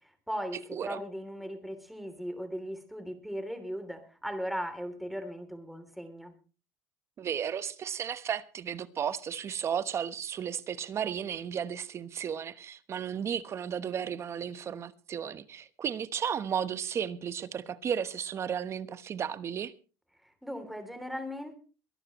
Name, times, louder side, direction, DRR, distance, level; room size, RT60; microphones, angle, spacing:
voice 1, 0.0-6.3 20.2-21.6, equal, ahead, 3.1 m, -38 dB
voice 2, 7.2-19.7, right 8 dB, 35° right, 1.1 m, -34 dB
23.5 x 11.5 x 3.1 m
supercardioid pair, 115°, 8 cm